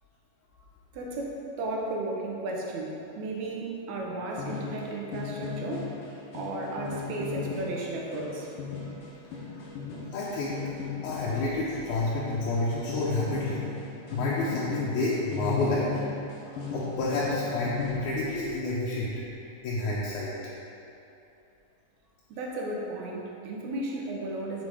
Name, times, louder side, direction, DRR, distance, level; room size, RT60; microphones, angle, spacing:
voice 1, 0.9-5.9 6.3-8.5 22.3-24.6, right 2 dB, 75° right, -2 dB, 2.1 m, -34 dB
sound 1, 4.4-18.0, left 5 dB, 65° left, 1.5 m, -36 dB
voice 2, 10.1-10.6 11.0-13.6 14.1-15.8 16.7-19.1 19.6-20.3, left 2 dB, 85° left, -7 dB, 2.2 m, -29 dB
6.7 x 3.9 x 4.9 m, 2.8 s
omnidirectional pair, 3.4 m